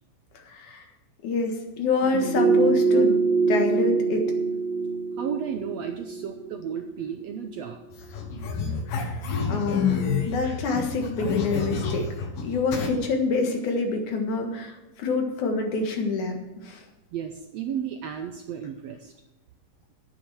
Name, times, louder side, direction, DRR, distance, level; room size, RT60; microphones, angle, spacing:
voice 1, 0.5-0.8 1.2-3.2 3.5-4.3 8.9-9.2 9.5-12.1 12.4-16.4 16.6-16.8, left 4 dB, 65° left, 4 dB, 3.0 m, -27 dB
sound 1, 2.0-7.2 7.5-7.6, right 4 dB, 55° right, 2.7 m, -24 dB
voice 2, 5.2-7.8 17.1-19.1, right 8 dB, 75° right, 5 dB, 1.6 m, -33 dB
sound 2, 7.9-12.9, left 5 dB, 90° left, 3.2 m, -28 dB
10.5 x 9.2 x 6.2 m, 1.0 s
omnidirectional pair, 3.8 m